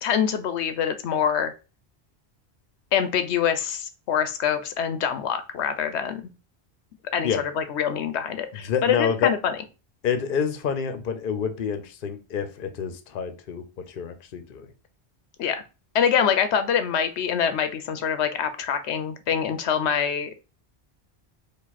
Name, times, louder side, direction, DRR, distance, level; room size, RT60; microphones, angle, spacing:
voice 1, 0.0-1.5 2.9-6.2 7.1-7.3 7.5-9.6 15.4-15.6 15.9-20.4, left 8 dB, 90° left, 10 dB, 0.9 m, -25 dB
voice 2, 8.6-9.3 10.0-14.7, left 7 dB, 60° left, 9 dB, 0.8 m, -28 dB
4.8 x 2.5 x 4.1 m, 0.30 s
omnidirectional pair, 1.1 m